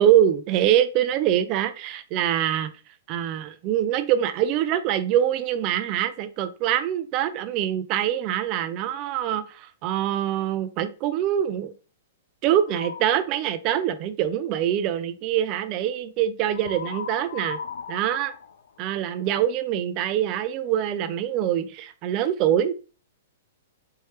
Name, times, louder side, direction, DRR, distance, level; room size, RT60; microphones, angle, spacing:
voice 1, 0.0-2.7 3.1-11.7 12.4-17.6 17.9-18.3 18.8-22.7, right 10 dB, 25° right, 0.4 m, -24 dB
sound 1, 12.7-13.2 16.5-19.3, left 6 dB, 70° left, 0.4 m, -37 dB
4.3 x 3.2 x 3.2 m
hypercardioid pair, 175°, 0 cm